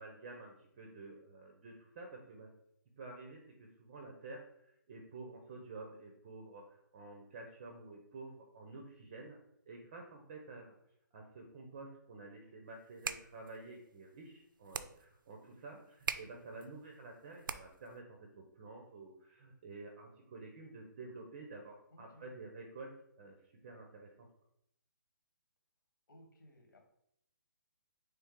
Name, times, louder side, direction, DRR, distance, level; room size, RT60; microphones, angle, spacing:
voice 1, 0.0-2.5 3.0-9.4 9.7-10.8 11.1-22.9 23.2-24.3, right 3 dB, 25° right, 2 dB, 0.5 m, -50 dB
sound 1, 12.8-18.0, right 6 dB, 80° right, 0.4 m, -45 dB
voice 2, 21.9-22.5 26.1-26.8, left 1 dB, 75° left, 2 dB, 1.6 m, -60 dB
4.3 x 3.3 x 3.6 m, 0.74 s
hypercardioid pair, 170°, 11 cm